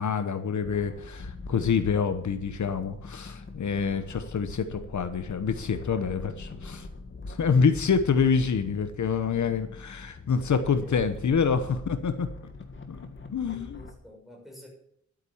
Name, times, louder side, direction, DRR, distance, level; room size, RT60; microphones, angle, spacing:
voice 1, 0.0-6.9 7.2-12.3 12.9-13.0 13.3-13.8, left 6 dB, 70° left, 9 dB, 1.1 m, -26 dB
sound 1, 0.6-13.9, left 3 dB, 40° left, 1.8 m, -43 dB
voice 2, 13.4-14.7, equal, ahead, -2 dB, 6.2 m, -49 dB
11.5 x 9.1 x 7.2 m, 0.71 s
wide cardioid pair, 140°, 30 cm